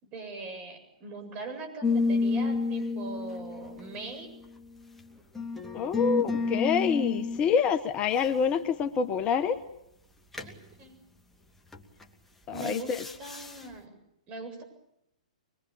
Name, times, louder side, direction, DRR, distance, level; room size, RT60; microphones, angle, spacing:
voice 1, 0.0-4.3 10.4-11.0 12.5-14.0 14.3-14.6, right 3 dB, 30° right, 7 dB, 7.8 m, -41 dB
sound 1, 1.8-4.7 5.4-7.4 10.3-10.6 11.7-12.0 12.5-13.6, left 4 dB, 5° left, 2.5 m, -30 dB
voice 2, 5.7-9.6 12.5-13.0, left 6 dB, 30° left, 10 dB, 1.3 m, -27 dB
24.5 x 22.5 x 8.7 m, 0.79 s
hypercardioid pair, 120°, 4 cm